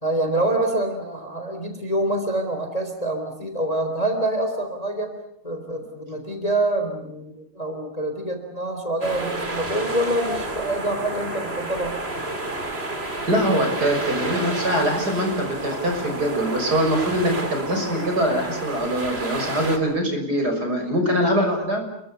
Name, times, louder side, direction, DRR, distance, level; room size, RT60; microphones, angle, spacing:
voice 1, 0.0-5.2 5.4-12.0, right 1 dB, 15° left, 6 dB, 3.5 m, -26 dB
sound 1, 9.0-19.8, right 2 dB, 25° right, 3.4 m, -30 dB
voice 2, 13.3-21.8, equal, 45° right, 4 dB, 6.6 m, -23 dB
29.5 x 23.0 x 6.9 m, 0.78 s
omnidirectional pair, 2.3 m